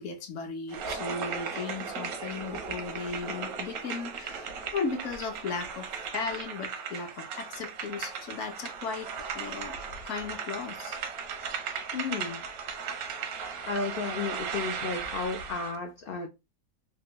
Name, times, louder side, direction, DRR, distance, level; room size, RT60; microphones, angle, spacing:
voice 1, 0.0-5.9 6.1-9.1 9.3-9.8 10.0-11.0, left 5 dB, 65° left, 1.0 m, -36 dB
sound 1, 0.7-15.8, right 6 dB, 85° right, 1.1 m, -37 dB
voice 2, 11.9-12.4 13.7-16.3, left 4 dB, 90° left, 0.5 m, -33 dB
3.4 x 2.1 x 2.9 m
omnidirectional pair, 1.5 m